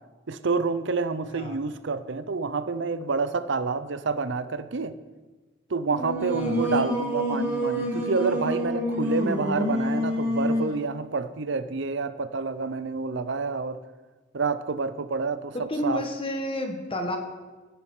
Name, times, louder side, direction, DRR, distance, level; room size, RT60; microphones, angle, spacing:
voice 1, 0.3-4.9 5.7-13.8 14.3-15.5 15.8-16.0, right 4 dB, 70° right, 13 dB, 0.7 m, -28 dB
Singing, 5.9-10.8, equal, 10° right, 4.6 m, -27 dB
voice 2, 15.5-17.2, left 1 dB, 30° left, 4 dB, 1.5 m, -30 dB
15.5 x 9.9 x 4.9 m, 1.3 s
head